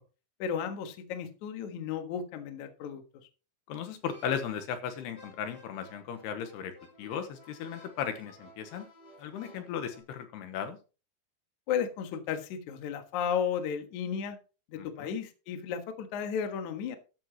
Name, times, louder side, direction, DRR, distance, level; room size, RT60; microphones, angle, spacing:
voice 1, 0.4-3.0 11.7-14.4 14.7-17.0, left 7 dB, 60° left, 7 dB, 2.2 m, -34 dB
voice 2, 3.7-6.7 7.0-8.9 9.2-10.8 14.8-15.1, left 8 dB, 75° left, 8 dB, 3.0 m, -36 dB
sound 1, 4.0-10.0, equal, 25° left, 6.3 m, -54 dB
13.5 x 9.9 x 3.0 m, 0.33 s
omnidirectional pair, 5.1 m